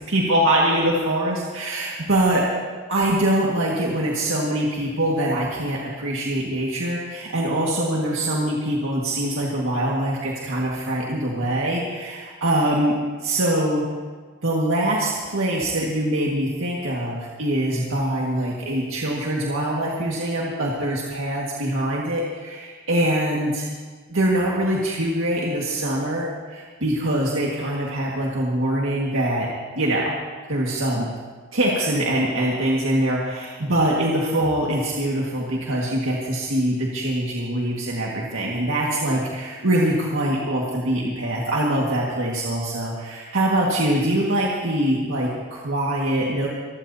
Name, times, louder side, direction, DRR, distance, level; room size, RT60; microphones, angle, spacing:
voice 1, 0.1-2.5 2.9-13.9 14.4-23.7 24.1-29.5 29.8-30.2 30.5-31.1 31.5-46.5, right 1 dB, 75° right, -3 dB, 1.9 m, -23 dB
24.5 x 15.0 x 2.8 m, 1.4 s
head